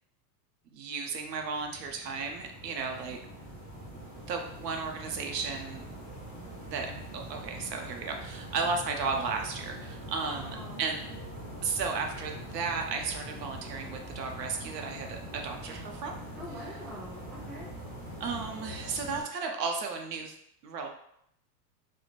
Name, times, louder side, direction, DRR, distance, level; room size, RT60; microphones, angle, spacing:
voice 1, 0.7-3.2 4.3-5.8 6.6-11.1 11.6-16.2 18.2-20.3 20.6-20.9, right 4 dB, 85° right, 3 dB, 0.7 m, -34 dB
sound 1, 1.1-19.2, right 1 dB, 20° right, 0.8 m, -43 dB
voice 2, 10.2-10.8 13.4-13.5 16.3-17.7, equal, 5° left, -12 dB, 0.3 m, -45 dB
2.4 x 2.1 x 3.0 m, 0.73 s
hypercardioid pair, 125°, 48 cm